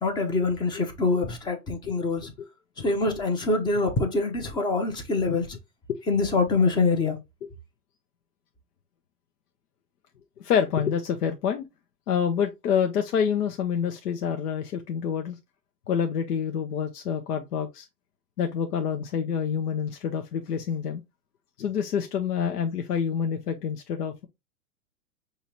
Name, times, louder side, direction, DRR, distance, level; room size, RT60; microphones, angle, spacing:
voice 1, 0.0-2.3 2.8-5.5 6.1-7.2, left 3 dB, 10° left, 0.4 m, -25 dB
voice 2, 10.4-11.6 12.1-15.4 15.9-17.9 18.4-21.0 21.6-24.3, left 7 dB, 90° left, 0.8 m, -27 dB
5.6 x 2.8 x 3.0 m
hypercardioid pair, 135°, 45 cm